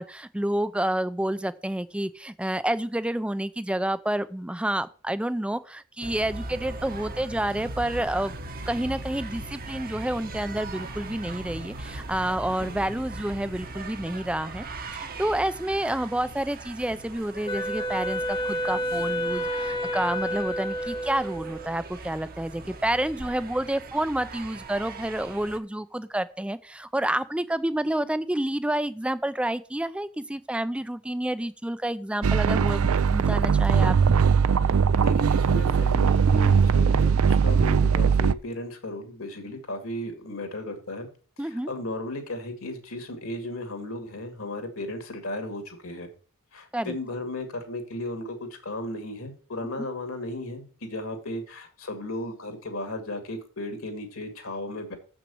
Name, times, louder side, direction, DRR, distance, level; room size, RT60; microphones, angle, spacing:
voice 1, 0.0-8.3 8.7-14.6 14.9-33.9 41.4-41.7 46.7-46.9 49.8-49.9, right 1 dB, 5° right, 14 dB, 0.4 m, -29 dB
sound 1, 6.0-25.6, right 2 dB, 40° right, 1.0 m, -39 dB
Wind instrument woodwind instrument, 17.5-21.8, equal, 25° left, 1.1 m, -30 dB
sound 2, 32.2-38.3, right 6 dB, 70° right, 0.4 m, -20 dB
voice 2, 34.8-41.1 41.4-46.1 46.5-48.4 48.6-55.0, left 1 dB, 65° left, 6 dB, 2.3 m, -35 dB
7.3 x 6.1 x 7.0 m, 0.39 s
head